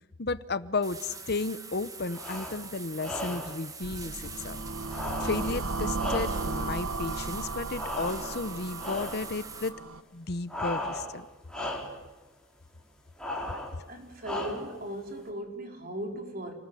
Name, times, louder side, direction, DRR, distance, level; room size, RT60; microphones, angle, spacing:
voice 1, 0.2-4.6 4.9-9.7 10.1-11.3, left 3 dB, 50° left, 0.9 m, -33 dB
sound 1, 0.8-9.7, right 4 dB, 15° right, 1.8 m, -44 dB
sound 2, 2.1-2.6 3.0-3.6 4.9-6.7 7.8-8.5 8.8-9.3 10.5-11.2 11.5-12.0 13.2-13.8 14.2-14.8, left 1 dB, 5° left, 4.1 m, -36 dB
sound 3, 3.8-10.0, right 3 dB, 90° right, 1.4 m, -35 dB
voice 2, 13.8-16.5, right 1 dB, 45° right, 4.7 m, -38 dB
29.0 x 20.5 x 10.0 m
head